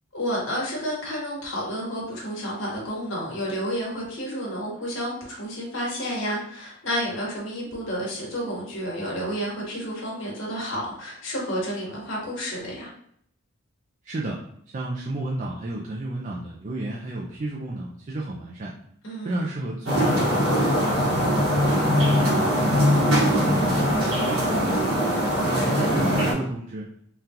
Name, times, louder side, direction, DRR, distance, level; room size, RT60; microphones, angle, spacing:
voice 1, 0.1-12.9 19.0-19.4 25.5-25.9, equal, 60° left, -4 dB, 1.2 m, -30 dB
voice 2, 14.0-14.4 14.7-18.7 19.2-21.4 21.8-24.8 25.4-26.9, right 2 dB, 35° right, -3 dB, 0.4 m, -32 dB
sound 1, 19.9-26.3, equal, 75° right, 1.3 m, -21 dB
3.7 x 2.4 x 2.8 m, 0.66 s
head